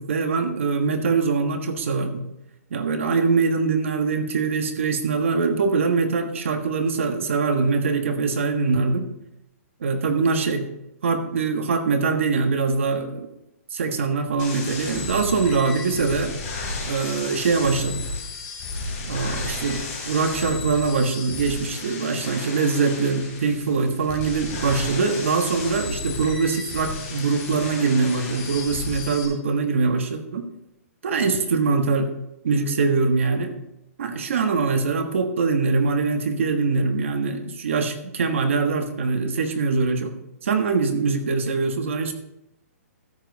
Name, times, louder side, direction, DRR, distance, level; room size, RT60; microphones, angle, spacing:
voice 1, 0.0-2.2 2.7-9.1 9.8-10.7 11.0-13.3 13.7-16.3 16.9-18.1 19.1-30.5 31.0-32.1 32.4-33.5 34.0-40.1 40.4-42.1, right 4 dB, 55° right, 6 dB, 1.4 m, -23 dB
sound 1, 14.4-29.3, left 3 dB, 20° left, 3.2 m, -33 dB
13.5 x 7.5 x 4.1 m, 0.86 s
hypercardioid pair, 180°, 8 cm